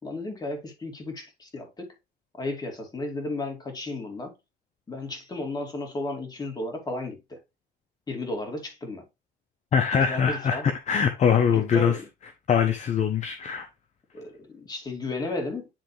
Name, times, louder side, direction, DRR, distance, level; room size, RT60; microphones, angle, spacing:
voice 1, 0.0-1.9 2.4-4.3 4.9-7.4 8.1-9.0 9.9-10.7 11.4-12.0 14.1-15.7, left 2 dB, 25° left, 2.7 m, -34 dB
voice 2, 9.7-12.0 12.5-13.7, left 7 dB, 45° left, 0.9 m, -23 dB
10.0 x 3.5 x 3.2 m
cardioid pair, 110°, 17 cm